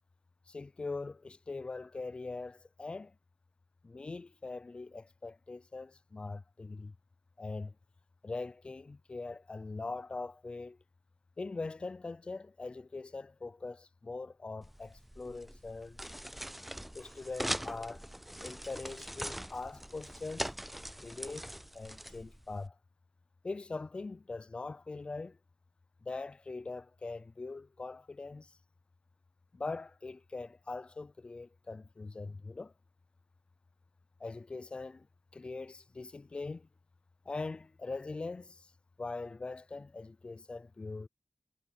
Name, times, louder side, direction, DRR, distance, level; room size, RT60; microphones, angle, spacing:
voice 1, 0.5-3.1 3.8-6.9 7.4-7.7 8.2-10.8 11.4-16.0 16.9-18.1 18.4-20.5 21.0-21.5 21.7-22.8 23.4-25.4 26.0-28.6 29.5-32.7 34.2-35.1 35.3-36.7 37.3-38.7 39.0-41.1, left 3 dB, 50° left, 0.6 m, -42 dB
sound 1, 14.6-22.7, equal, 5° right, 0.4 m, -42 dB
cardioid pair, 45°, 2 cm